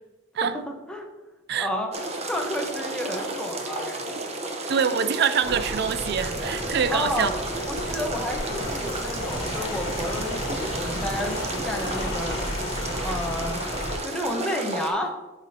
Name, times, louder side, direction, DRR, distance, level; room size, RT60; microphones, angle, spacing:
voice 1, 0.4-1.1 1.6-1.9 2.2-4.3 6.9-7.4 7.7-12.5 13.0-13.6 14.0-15.2, left 1 dB, 5° left, 1.0 m, -31 dB
sound 1, 1.9-14.9, right 2 dB, 35° right, 0.8 m, -32 dB
voice 2, 4.7-7.3, right 7 dB, 55° right, 0.4 m, -25 dB
Rain, 5.4-14.0, left 1 dB, 85° left, 1.4 m, -33 dB
9.7 x 5.0 x 2.8 m
head